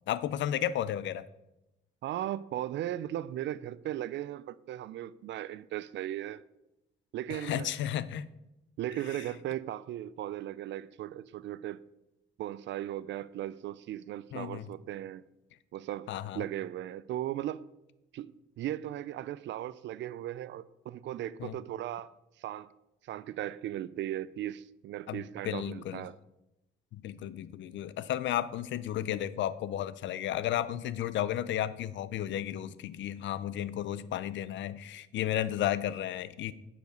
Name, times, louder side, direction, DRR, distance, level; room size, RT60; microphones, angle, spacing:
voice 1, 0.1-1.2 7.3-8.3 9.1-9.2 14.3-14.7 16.1-16.5 21.4-21.6 25.1-26.1 26.9-36.5, left 11 dB, 70° left, 0.5 m, -33 dB
voice 2, 2.0-6.4 7.1-7.7 8.8-11.8 12.4-15.2 15.7-17.6 18.1-22.7 23.0-26.2, right 12 dB, 65° right, 0.4 m, -37 dB
9.2 x 5.0 x 5.2 m
cardioid pair, 90°, 20 cm